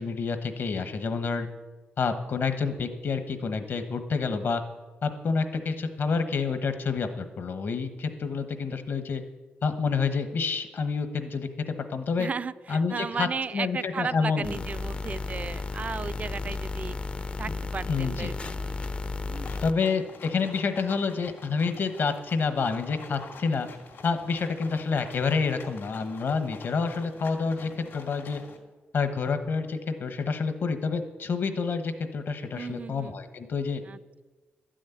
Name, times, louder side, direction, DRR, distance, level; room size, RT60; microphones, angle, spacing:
voice 1, 0.0-1.5 2.0-4.6 5.0-9.2 9.6-12.3 12.7-14.5 17.9-18.3 19.6-23.7 24.0-28.4 28.9-33.8, left 5 dB, 60° left, 8 dB, 1.1 m, -28 dB
voice 2, 12.2-17.0 17.4-19.6 19.9-20.0 32.6-33.2 33.8-34.2, right 5 dB, 35° right, 16 dB, 0.3 m, -35 dB
sound 1, 14.4-19.7, left 3 dB, 30° left, 0.4 m, -33 dB
sound 2, 19.3-28.6, left 4 dB, 80° left, 2.7 m, -47 dB
12.5 x 6.4 x 9.2 m, 1.2 s
cardioid pair, 105°, 4 cm